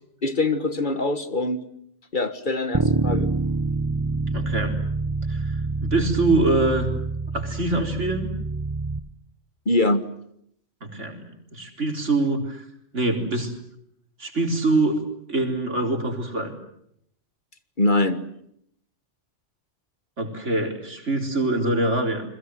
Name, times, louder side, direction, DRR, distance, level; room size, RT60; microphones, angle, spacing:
voice 1, 0.2-1.7 2.1-3.3 9.7-10.0 17.8-18.2, left 2 dB, 45° left, 11 dB, 1.7 m, -23 dB
Bass guitar, 2.7-9.0, right 3 dB, 20° right, 1.1 m, -26 dB
voice 2, 4.3-4.8 5.3-6.9 7.3-8.3 10.8-12.7 12.9-13.5 14.2-16.5 20.2-22.2, right 2 dB, 85° right, 3 dB, 4.5 m, -24 dB
29.5 x 21.5 x 7.8 m, 0.73 s
omnidirectional pair, 1.2 m